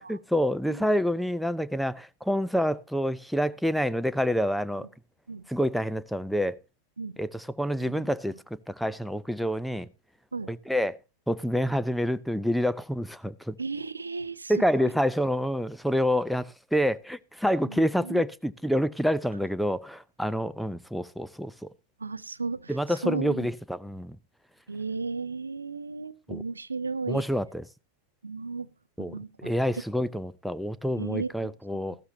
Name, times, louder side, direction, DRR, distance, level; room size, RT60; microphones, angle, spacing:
voice 1, 0.1-4.9 5.5-6.6 7.2-9.9 10.5-11.0 11.3-13.6 14.5-21.7 22.7-24.2 26.3-26.4 27.1-27.7 29.0-32.0, equal, ahead, 0.5 m, -27 dB
voice 2, 13.6-14.5 14.8-14.9 17.7-18.2 22.0-22.7 23.0-23.5 24.7-27.2 28.2-28.7 29.1-29.5 31.0-31.5, right 4 dB, 80° right, 0.5 m, -34 dB
14.5 x 12.5 x 2.7 m
figure-of-eight pair, 90°, 0 cm